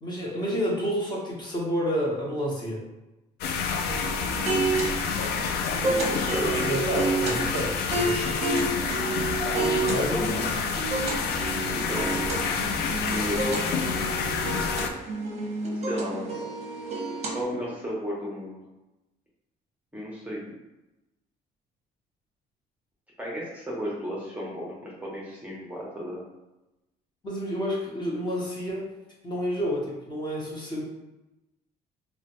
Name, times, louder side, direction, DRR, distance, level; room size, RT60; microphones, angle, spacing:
voice 1, 0.0-2.8 6.4-8.4 9.8-10.4 27.2-28.9 29.2-30.8, equal, 25° left, -4 dB, 1.0 m, -30 dB
sound 1, 3.4-14.9, left 5 dB, 70° left, 0.4 m, -28 dB
sound 2, 3.9-17.4, right 3 dB, 40° right, 0.7 m, -30 dB
voice 2, 5.8-6.5 9.9-10.4 11.7-12.4 13.1-13.8 15.7-16.3 17.3-18.6 19.9-20.4 23.2-26.2, equal, 10° right, -6 dB, 0.8 m, -34 dB
3.2 x 2.2 x 3.0 m, 0.98 s
cardioid pair, 110°, 17 cm